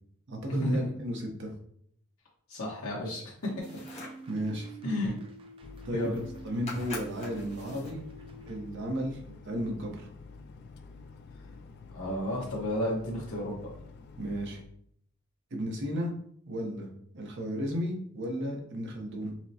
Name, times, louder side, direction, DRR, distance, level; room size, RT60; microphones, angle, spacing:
voice 1, 0.3-1.5 4.3-4.7 5.8-6.1 6.4-8.0 8.5-9.2 9.5-10.1 14.2-14.6 15.5-16.1 16.5-16.9 17.1-19.3, equal, 55° right, 1 dB, 0.8 m, -33 dB
voice 2, 2.5-3.2 4.8-5.1 5.9-6.2 11.9-13.6, left 1 dB, 80° left, -4 dB, 1.2 m, -32 dB
sound 1, 3.4-4.3 5.8-5.9 6.0-6.4 6.7-8.0, left 3 dB, 30° left, 0.8 m, -44 dB
sound 2, 3.4-8.6, right 5 dB, 25° right, 0.3 m, -47 dB
sound 3, 5.6-14.6, left 4 dB, 50° left, 0.3 m, -49 dB
5.7 x 2.1 x 2.7 m, 0.66 s
head